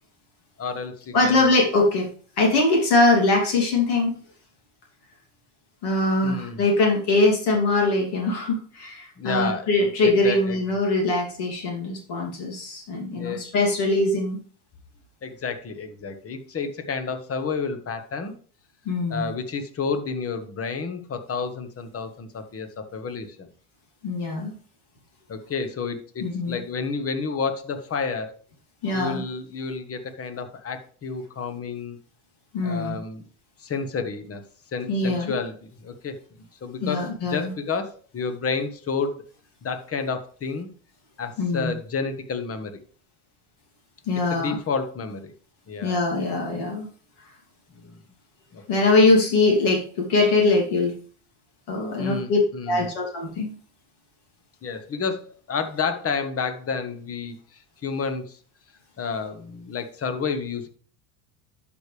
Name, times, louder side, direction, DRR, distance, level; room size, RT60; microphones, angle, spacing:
voice 1, 0.6-1.5 6.2-6.6 9.2-9.7 10.0-10.6 13.2-13.4 15.2-18.3 19.1-23.5 25.3-28.3 28.9-32.0 32.6-33.2 33.6-34.4 34.7-36.2 36.6-39.2 39.6-40.7 41.2-42.8 44.3-45.3 45.7-46.0 47.7-48.0 48.5-48.6 52.0-52.9 54.6-58.4 59.0-60.7, left 5 dB, 30° left, 8 dB, 1.3 m, -30 dB
voice 2, 1.1-2.1 2.4-4.1 5.8-14.4 18.9-19.3 24.0-24.5 26.2-26.6 28.8-29.2 32.5-33.0 34.9-35.3 36.8-37.5 41.4-41.7 44.1-44.6 45.8-46.9 48.7-50.9 51.7-52.4 52.7-53.6, left 2 dB, 55° left, 0 dB, 2.8 m, -22 dB
12.0 x 5.2 x 3.3 m, 0.43 s
supercardioid pair, 90°, 46 cm